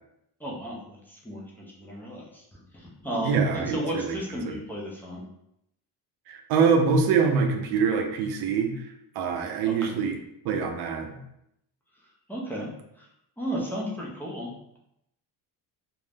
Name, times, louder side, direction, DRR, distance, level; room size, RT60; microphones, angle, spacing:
voice 1, 0.4-5.2 9.6-9.9 12.3-12.7 12.9-13.1 13.4-14.8, equal, 5° left, -5 dB, 0.6 m, -34 dB
voice 2, 3.2-4.2 4.5-4.6 6.3-8.8 9.1-10.2 10.4-11.2, right 5 dB, 65° right, 4 dB, 0.6 m, -24 dB
2.5 x 2.1 x 3.3 m, 0.79 s
cardioid pair, 125°, 40 cm